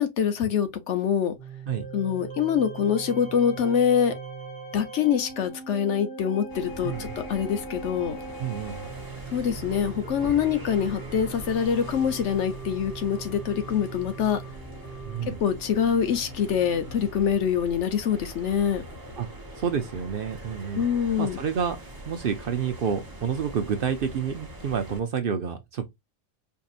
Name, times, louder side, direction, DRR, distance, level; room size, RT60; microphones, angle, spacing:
voice 1, 0.0-1.3 1.9-4.1 4.7-8.2 9.3-14.4 15.4-18.8 20.7-21.4, left 8 dB, 70° left, 1.0 m, -25 dB
sound 1, 1.4-17.1, right 4 dB, 45° left, 1.5 m, -40 dB
sound 2, 6.5-25.0, equal, 20° right, 1.0 m, -42 dB
voice 2, 8.4-8.9 15.0-15.4 19.2-19.3 19.6-20.8 21.2-21.8 22.0-25.9, right 7 dB, 55° right, 0.7 m, -29 dB
4.6 x 2.7 x 2.4 m
omnidirectional pair, 1.3 m